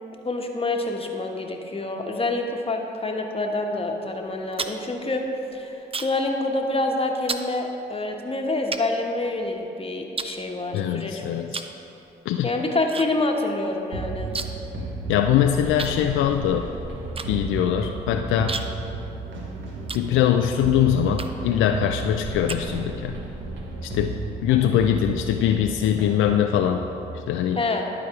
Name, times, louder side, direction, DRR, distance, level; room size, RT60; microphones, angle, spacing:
voice 1, 0.2-5.3 5.5-11.2 12.4-14.4 24.5-24.8 27.5-27.8, left 2 dB, 30° left, 2 dB, 1.2 m, -27 dB
sound 1, 4.2-6.3 6.6-6.9 7.3-7.5 8.1-8.2 8.7-9.7 10.2-11.0 11.5-11.8 12.1-13.1 13.3-13.4 13.7-14.7 15.0-15.1 15.8-20.6 21.1-21.6 22.0-23.1, right 4 dB, 25° right, 0.6 m, -34 dB
voice 2, 10.7-11.6 12.3-12.5 15.1-16.7 17.3-18.6 19.9-23.2 23.8-26.8 27.3-27.6, left 10 dB, 75° left, 5 dB, 0.4 m, -22 dB
sound 2, 13.9-27.2, right 3 dB, 70° right, 1.4 m, -33 dB
11.5 x 4.7 x 4.8 m, 2.9 s
hypercardioid pair, 45°, 21 cm